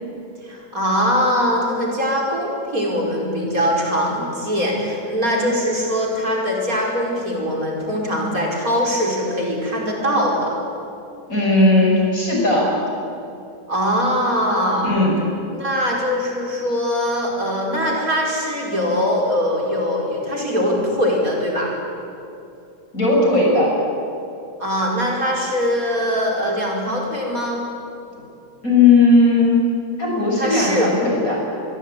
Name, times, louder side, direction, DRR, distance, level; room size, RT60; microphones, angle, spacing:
voice 1, 0.4-10.5 13.7-14.9 15.5-21.7 24.6-27.6 30.4-30.9, equal, 55° right, -1 dB, 5.5 m, -22 dB
voice 2, 11.3-12.7 14.8-15.1 22.9-23.7 28.6-29.6 30.0-31.4, left 3 dB, 50° left, -2 dB, 7.2 m, -16 dB
25.5 x 22.0 x 9.2 m, 2.7 s
omnidirectional pair, 1.8 m